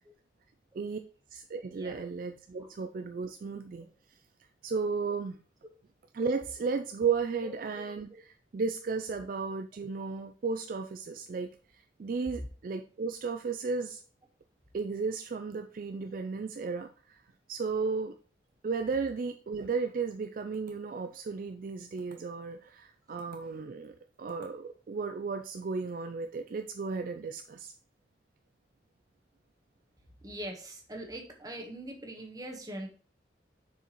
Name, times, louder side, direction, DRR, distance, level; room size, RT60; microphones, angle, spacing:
voice 1, 1.3-3.9 4.6-5.4 6.1-8.1 8.5-11.5 12.0-14.0 14.7-17.2 17.5-18.1 18.6-27.7, right 4 dB, 50° right, 7 dB, 0.3 m, -34 dB
voice 2, 7.4-7.9 8.1-8.2 30.2-32.9, right 1 dB, 20° right, 3 dB, 1.1 m, -42 dB
6.8 x 4.7 x 3.0 m, 0.41 s
head